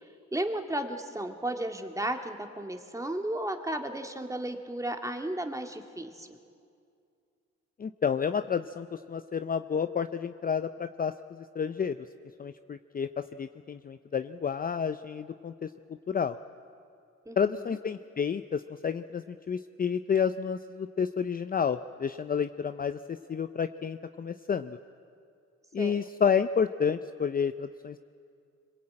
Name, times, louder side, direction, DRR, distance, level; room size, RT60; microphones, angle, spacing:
voice 1, 0.3-6.4 17.3-17.8 25.8-25.9, right 1 dB, 10° right, 5 dB, 2.0 m, -34 dB
voice 2, 7.8-11.1 11.6-12.0 12.4-15.7 16.1-16.4 17.4-24.8 25.7-28.0, left 7 dB, 30° left, 10 dB, 0.6 m, -30 dB
25.5 x 22.0 x 8.8 m, 2.4 s
cardioid pair, 90°, 30 cm